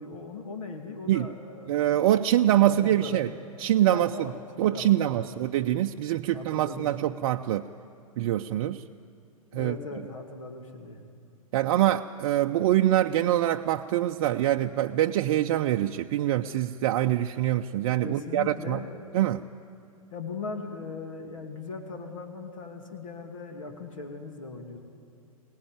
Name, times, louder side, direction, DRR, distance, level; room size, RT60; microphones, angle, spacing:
voice 1, 0.0-1.9 2.6-3.4 3.9-5.4 6.3-7.2 9.5-11.0 18.0-19.4 20.1-24.8, left 3 dB, 65° left, 4 dB, 2.6 m, -39 dB
voice 2, 1.7-3.3 3.6-4.1 4.6-7.7 8.2-8.8 9.5-9.7 11.5-18.8 19.1-19.4, right 13 dB, 45° right, 4 dB, 0.6 m, -24 dB
25.0 x 18.5 x 9.8 m, 2.5 s
figure-of-eight pair, 105°, 18 cm